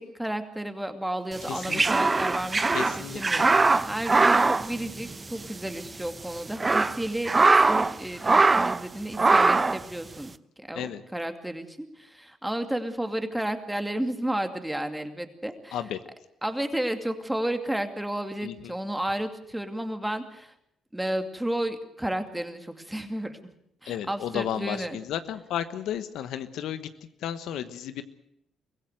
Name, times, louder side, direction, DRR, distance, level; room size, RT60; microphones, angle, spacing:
voice 1, 0.0-2.6 3.0-10.3 10.7-15.8 16.4-20.5 20.9-23.4 23.8-25.0, right 1 dB, 5° right, 7 dB, 2.4 m, -32 dB
sound 1, 1.4-5.5 5.7-5.9 6.4-7.9 8.2-8.8 9.2-9.8, right 3 dB, 25° right, 0.8 m, -21 dB
voice 2, 1.5-2.1 2.7-3.5 10.7-11.0 15.7-16.0 18.4-18.7 23.9-26.9 27.2-28.0, left 10 dB, 80° left, 11 dB, 1.2 m, -33 dB
23.5 x 16.0 x 8.0 m, 0.76 s
cardioid pair, 90°, 0 cm